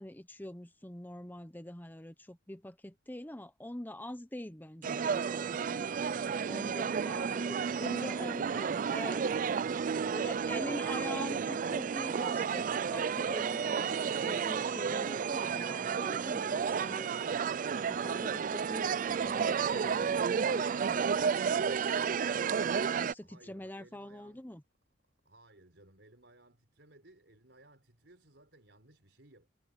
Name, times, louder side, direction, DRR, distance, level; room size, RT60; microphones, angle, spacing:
voice 1, 0.0-9.2 10.1-17.4 17.8-22.5 23.0-24.6, left 1 dB, 10° left, 1.0 m, -44 dB
sound 1, 4.8-23.1, right 6 dB, 50° right, 0.4 m, -32 dB
voice 2, 6.8-10.9 23.2-24.5 25.2-29.5, right 2 dB, 80° right, 4.4 m, -60 dB
head